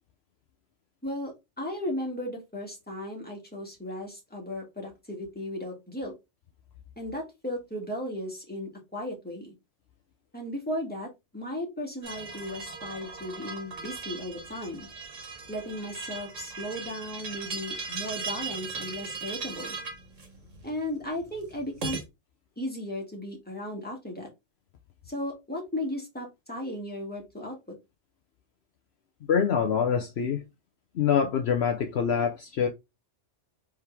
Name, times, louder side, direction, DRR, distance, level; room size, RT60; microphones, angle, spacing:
voice 1, 1.0-6.1 7.0-9.5 10.3-14.9 15.5-19.8 20.6-22.0 22.6-24.3 25.1-27.8, left 1 dB, 10° left, 1.8 m, -36 dB
sound 1, 12.0-22.0, right 4 dB, 80° right, 1.8 m, -38 dB
voice 2, 29.3-30.4 30.9-32.7, left 7 dB, 65° left, 0.8 m, -25 dB
4.4 x 3.6 x 3.3 m
omnidirectional pair, 1.3 m